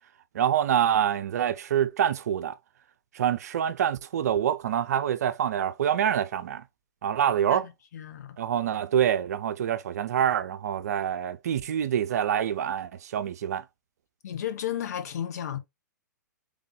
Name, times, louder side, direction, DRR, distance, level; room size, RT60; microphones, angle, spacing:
voice 1, 0.3-2.5 3.1-6.6 7.0-7.7 8.4-13.6, right 9 dB, 55° right, 0.5 m, -26 dB
voice 2, 7.5-8.4 14.2-15.6, left 10 dB, 55° left, 1.1 m, -33 dB
3.6 x 3.5 x 3.3 m
figure-of-eight pair, 115°, 10 cm